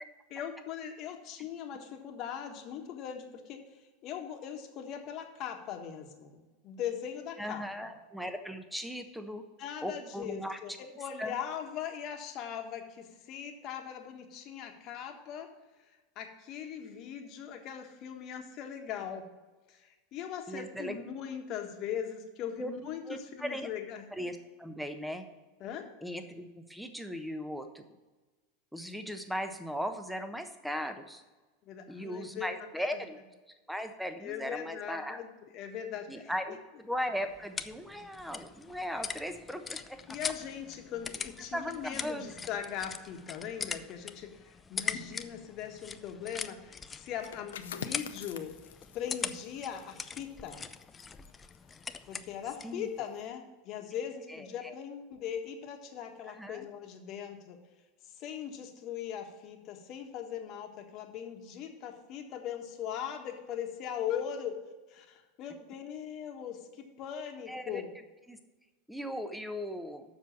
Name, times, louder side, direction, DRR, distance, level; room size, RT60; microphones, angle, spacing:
voice 1, 0.3-3.6 4.0-7.9 9.6-15.5 16.1-19.2 19.7-24.1 25.6-25.8 31.6-32.5 34.2-36.3 40.1-48.5 48.9-50.6 52.1-57.6 58.2-64.5 64.9-66.6 67.0-67.9, left 9 dB, 45° left, 4 dB, 1.4 m, -40 dB
voice 2, 7.4-9.4 9.8-10.6 11.2-11.4 20.5-21.0 22.6-22.7 23.1-23.7 24.1-25.2 26.0-27.8 28.7-31.2 31.9-33.2 33.7-35.2 36.1-40.0 41.5-42.3 52.6-52.9 54.3-54.7 56.2-56.7 67.5-67.8 68.3-68.4 68.9-70.0, equal, ahead, 7 dB, 1.1 m, -38 dB
sound 1, 36.9-52.8, left 5 dB, 20° left, 0.5 m, -42 dB
sound 2, 47.1-52.6 52.9-53.2, left 8 dB, 75° left, 0.6 m, -47 dB
7.3 x 6.2 x 7.2 m, 1.2 s
hypercardioid pair, 90°, 0 cm